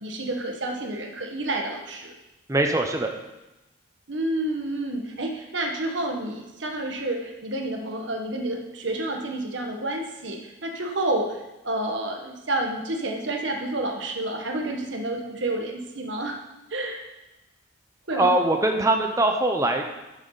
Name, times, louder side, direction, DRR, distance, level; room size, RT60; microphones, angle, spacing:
voice 1, 0.0-2.1 4.1-11.4 11.6-16.4 16.7-17.0 18.1-18.3, right 1 dB, 70° right, 2 dB, 1.5 m, -29 dB
voice 2, 2.5-3.1 18.1-19.8, right 2 dB, 15° right, 4 dB, 0.7 m, -22 dB
12.5 x 7.3 x 4.0 m, 1.0 s
head